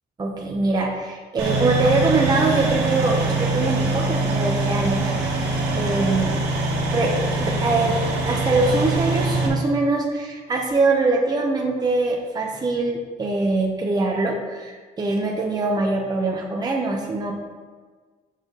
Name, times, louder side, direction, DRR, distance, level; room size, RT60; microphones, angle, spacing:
voice 1, 0.2-5.1 5.8-6.4 6.9-7.9 8.3-17.3, right 2 dB, 25° right, 0 dB, 0.9 m, -23 dB
sound 1, 1.4-9.5, right 3 dB, 85° right, 1.7 m, -23 dB
7.3 x 5.8 x 3.9 m, 1.5 s
cardioid pair, 110°, 17 cm